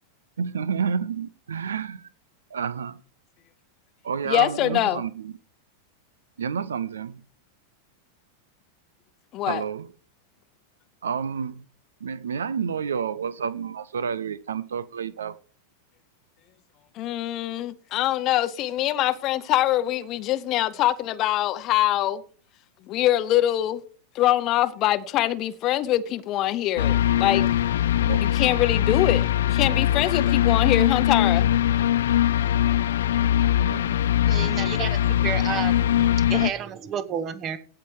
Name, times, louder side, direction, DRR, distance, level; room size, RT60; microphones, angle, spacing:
voice 1, 0.4-2.1 2.5-3.0 4.0-5.3 6.4-7.2 9.5-9.9 11.0-11.6 12.0-15.4 28.1-28.2 33.6-34.5, right 6 dB, 70° right, 0.5 m, -30 dB
voice 2, 4.2-5.0 9.3-9.6 16.9-22.2 22.9-23.8 24.1-27.5 28.2-31.5, left 13 dB, 35° left, 0.8 m, -24 dB
sound 1, 26.8-36.5, left 11 dB, 60° left, 0.4 m, -21 dB
voice 3, 34.3-37.6, right 8 dB, 30° right, 1.2 m, -31 dB
16.5 x 5.9 x 4.8 m
figure-of-eight pair, 90°, 0 cm